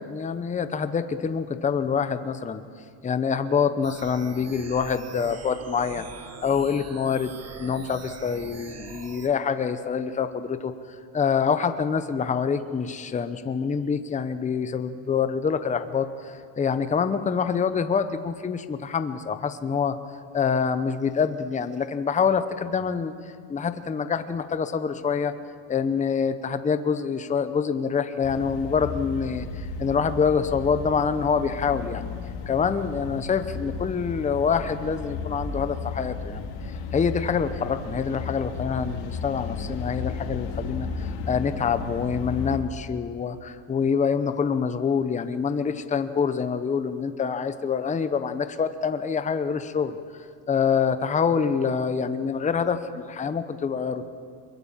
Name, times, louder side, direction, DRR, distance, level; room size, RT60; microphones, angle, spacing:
voice 1, 0.1-2.6 3.0-6.0 6.4-7.3 7.6-10.7 11.1-19.9 20.3-23.1 23.5-25.3 25.7-32.1 32.5-36.5 36.9-50.0 50.5-54.1, left 6 dB, 15° left, 10 dB, 0.9 m, -26 dB
sound 1, 3.8-9.3, right 6 dB, 30° right, 1.6 m, -43 dB
sound 2, 28.2-42.6, left 5 dB, 75° left, 3.4 m, -34 dB
22.5 x 22.0 x 7.4 m, 2.2 s
supercardioid pair, 130°, 49 cm